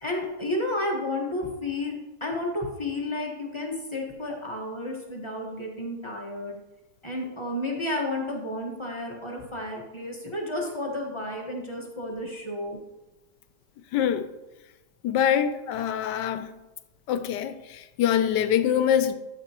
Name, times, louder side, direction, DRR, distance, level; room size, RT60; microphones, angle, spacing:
voice 1, 0.0-6.6 7.0-12.8, left 1 dB, 20° left, 1.2 m, -32 dB
voice 2, 13.9-14.3 15.0-16.6 17.1-19.1, left 9 dB, 80° left, 1.2 m, -24 dB
12.0 x 6.7 x 2.9 m
omnidirectional pair, 1.9 m